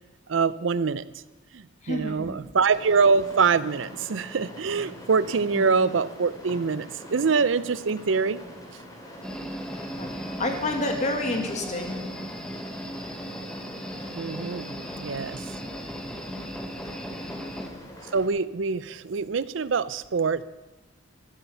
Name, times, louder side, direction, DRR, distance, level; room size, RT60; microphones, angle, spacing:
voice 1, 0.3-1.0 1.5-8.4 14.2-15.4 18.1-20.4, right 5 dB, 75° right, 17 dB, 0.5 m, -24 dB
voice 2, 1.8-2.3 5.5-5.6 10.0-10.1 10.4-12.0, left 1 dB, 40° left, 4 dB, 1.9 m, -28 dB
sound 1, 2.7-18.3, equal, 20° left, 2.7 m, -44 dB
sound 2, 9.2-17.7, equal, 5° left, 1.2 m, -37 dB
14.0 x 11.5 x 5.6 m, 1.1 s
head